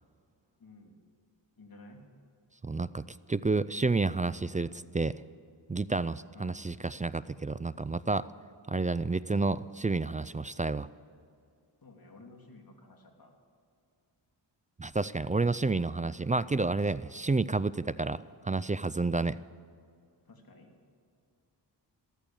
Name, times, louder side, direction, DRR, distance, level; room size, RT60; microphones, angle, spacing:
voice 1, 0.6-1.0 1.6-2.0 6.3-6.7 11.8-13.3 20.2-20.8, left 2 dB, 50° left, 1 dB, 3.0 m, -53 dB
voice 2, 2.6-3.0 3.3-5.1 5.7-8.3 8.7-10.9 14.8-19.4, right 3 dB, 20° right, 17 dB, 0.3 m, -30 dB
15.0 x 13.5 x 7.1 m, 2.3 s
cardioid pair, 70°, 45 cm